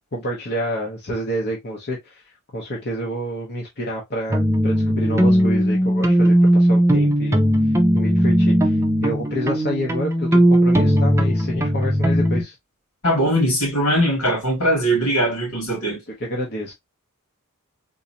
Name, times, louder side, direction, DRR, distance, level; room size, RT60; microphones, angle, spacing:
voice 1, 0.1-7.4 7.7-12.5 16.2-16.7, equal, 50° left, 1.0 m, -29 dB
sound 1, 4.3-12.4, equal, 10° right, 0.6 m, -18 dB
voice 2, 13.0-16.0, equal, 80° left, 2.4 m, -20 dB
3.8 x 2.8 x 2.8 m
head